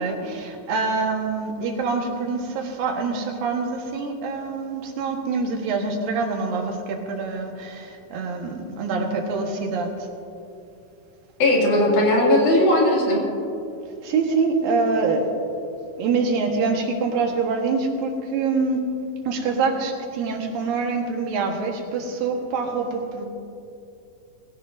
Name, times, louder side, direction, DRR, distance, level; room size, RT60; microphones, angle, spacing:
voice 1, 0.0-10.1 14.0-15.3 16.0-18.8 19.3-23.3, right 4 dB, 85° right, 1 dB, 3.2 m, -25 dB
voice 2, 11.4-13.3, left 1 dB, 65° left, -3 dB, 3.8 m, -18 dB
20.5 x 16.0 x 2.6 m, 2.6 s
omnidirectional pair, 4.0 m